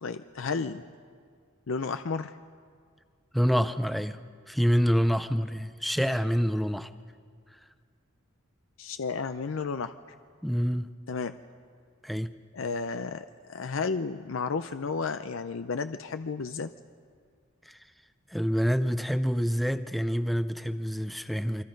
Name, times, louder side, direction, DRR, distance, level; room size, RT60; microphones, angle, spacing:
voice 1, 0.0-0.8 1.7-2.3 8.8-9.9 11.1-11.3 12.5-16.7, left 4 dB, 70° left, 10 dB, 0.5 m, -32 dB
voice 2, 3.3-4.2 4.5-6.9 10.4-10.9 12.0-12.3 17.7-17.8 18.3-21.6, equal, ahead, 11 dB, 0.5 m, -27 dB
29.0 x 23.5 x 5.3 m, 2.1 s
head